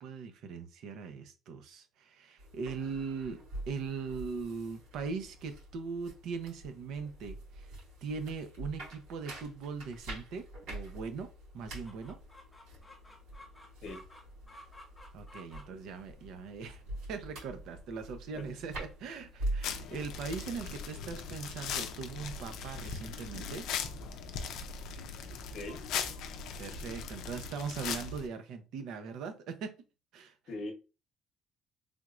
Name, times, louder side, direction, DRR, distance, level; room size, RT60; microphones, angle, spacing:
voice 1, 0.0-3.4 3.7-7.7 8.0-11.3 11.5-12.2 15.1-16.8 17.1-23.7 26.6-29.8 30.1-30.4, right 5 dB, 65° right, 0.7 m, -40 dB
sound 1, 2.4-19.7, right 1 dB, 90° right, 2.1 m, -45 dB
Chicken rooster, 11.8-22.9, left 1 dB, 10° left, 0.7 m, -58 dB
voice 2, 13.8-14.0 18.3-18.4 25.5-25.8 30.5-30.7, left 2 dB, 50° left, 0.9 m, -40 dB
sound 2, 19.6-28.3, left 6 dB, 70° left, 0.5 m, -39 dB
3.5 x 3.0 x 2.4 m
cardioid pair, 140°, 0 cm